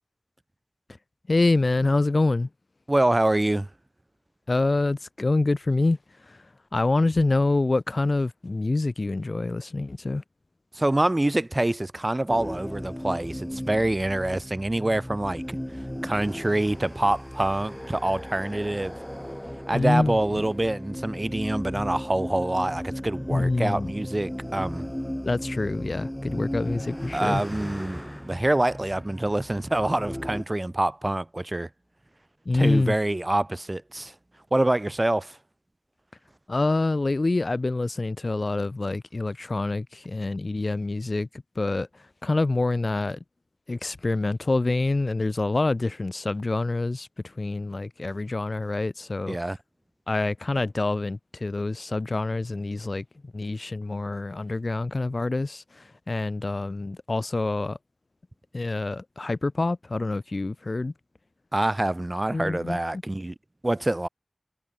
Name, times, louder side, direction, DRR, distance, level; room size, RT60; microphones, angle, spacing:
voice 1, 1.3-2.5 4.5-6.0 6.3-6.4 6.7-10.2 19.7-20.4 23.3-23.9 25.2-27.4 32.4-32.9 36.5-41.3 41.6-41.9 42.2-43.2 43.7-47.1 47.4-49.4 50.1-53.0 53.3-57.8 58.5-60.9 62.3-62.8, left 2 dB, 65° left, 1.2 m, -26 dB
voice 2, 2.9-3.7 10.7-15.4 16.0-19.0 19.7-24.9 27.1-31.7 32.5-34.1 34.5-35.4 49.3-49.6 61.5-63.3 63.6-64.1, right 1 dB, 35° right, 3.9 m, -26 dB
sound 1, 12.3-30.4, equal, 5° left, 2.8 m, -36 dB
wide cardioid pair, 45°, 0 cm